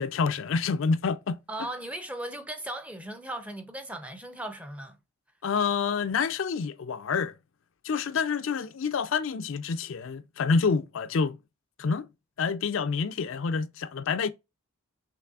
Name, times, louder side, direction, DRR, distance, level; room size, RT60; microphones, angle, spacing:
voice 1, 0.0-1.7 5.4-7.4 7.8-11.4 11.8-12.1 12.4-14.3, left 5 dB, 60° left, 0.4 m, -28 dB
voice 2, 1.5-5.0, right 1 dB, 5° right, 0.5 m, -37 dB
5.7 x 3.2 x 2.3 m
head